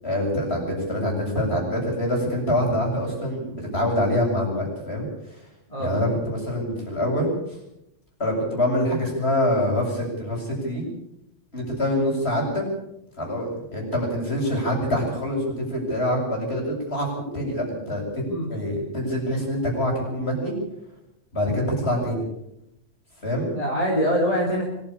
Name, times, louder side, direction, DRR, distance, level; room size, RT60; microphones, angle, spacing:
voice 1, 0.0-5.4 5.8-7.3 8.2-10.8 11.5-12.6 13.2-18.2 18.5-20.5 21.3-22.2 23.2-23.5, left 1 dB, 55° left, 0 dB, 8.3 m, -25 dB
voice 2, 5.7-6.1 18.3-18.5 21.5-21.7 23.5-24.6, equal, 30° left, -2 dB, 4.1 m, -24 dB
25.0 x 12.5 x 8.7 m, 0.83 s
omnidirectional pair, 1.3 m